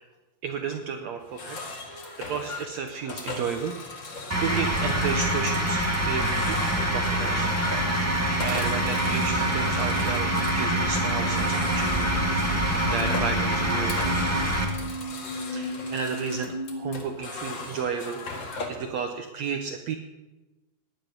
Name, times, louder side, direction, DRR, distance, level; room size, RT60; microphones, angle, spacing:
voice 1, 0.4-7.5 8.0-12.6 12.8-14.1 15.4-20.0, right 6 dB, 80° right, 5 dB, 1.5 m, -33 dB
sound 1, 1.2-18.9, left 3 dB, 40° left, 2.1 m, -39 dB
sound 2, 4.3-14.6, right 1 dB, 15° right, 0.5 m, -25 dB
sound 3, 7.4-17.0, right 2 dB, 75° left, 1.1 m, -35 dB
18.5 x 11.0 x 5.4 m, 1.1 s
omnidirectional pair, 4.4 m